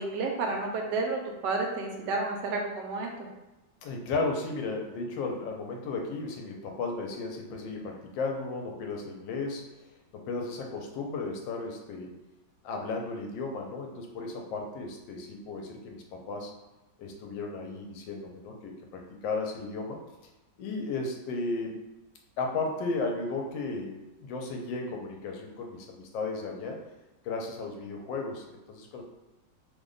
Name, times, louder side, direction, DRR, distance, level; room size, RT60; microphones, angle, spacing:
voice 1, 0.0-3.3, right 3 dB, 75° right, 2 dB, 1.2 m, -31 dB
voice 2, 3.8-9.6 10.1-12.1 12.6-16.5 17.0-20.0 20.6-21.8 22.4-26.8 27.2-29.0, left 3 dB, 90° left, 1 dB, 1.3 m, -34 dB
3.2 x 2.1 x 3.8 m, 1.0 s
omnidirectional pair, 2.0 m